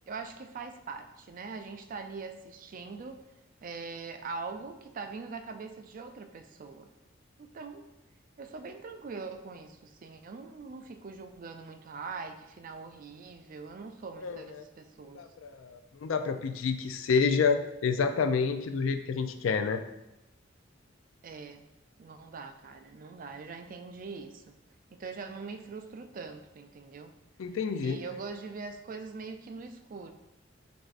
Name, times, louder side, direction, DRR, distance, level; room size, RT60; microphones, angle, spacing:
voice 1, 0.1-3.2 3.6-6.9 7.4-7.8 8.4-15.2 21.2-21.7 22.0-24.5 24.9-27.1 27.8-30.1, right 4 dB, 45° right, 7 dB, 0.4 m, -42 dB
voice 2, 15.1-19.8 27.4-28.0, left 5 dB, 90° left, 8 dB, 0.4 m, -28 dB
7.7 x 2.6 x 2.5 m, 0.93 s
head